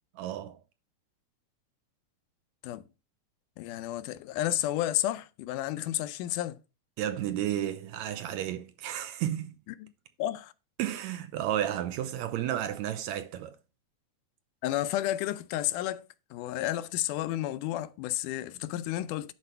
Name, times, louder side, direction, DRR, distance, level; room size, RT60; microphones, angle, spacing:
voice 1, 0.2-0.6 7.0-9.5 10.8-13.6, right 11 dB, 75° right, 1.8 m, -32 dB
voice 2, 3.6-6.6 9.7-9.9 10.2-10.5 14.6-16.0 16.3-19.3, left 14 dB, 85° left, 2.1 m, -31 dB
11.0 x 4.3 x 5.5 m
omnidirectional pair, 3.6 m